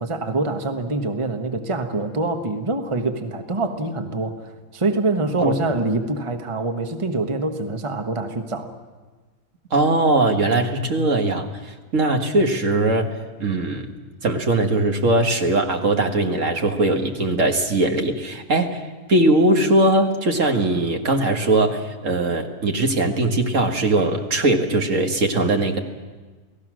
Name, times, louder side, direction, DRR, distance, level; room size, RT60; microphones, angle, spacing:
voice 1, 0.0-8.7, right 2 dB, 20° right, 5 dB, 1.2 m, -25 dB
voice 2, 9.7-13.1 13.4-13.9 14.2-18.8 19.1-25.8, right 2 dB, 55° right, 4 dB, 1.9 m, -20 dB
29.5 x 18.0 x 6.2 m, 1.3 s
omnidirectional pair, 1.6 m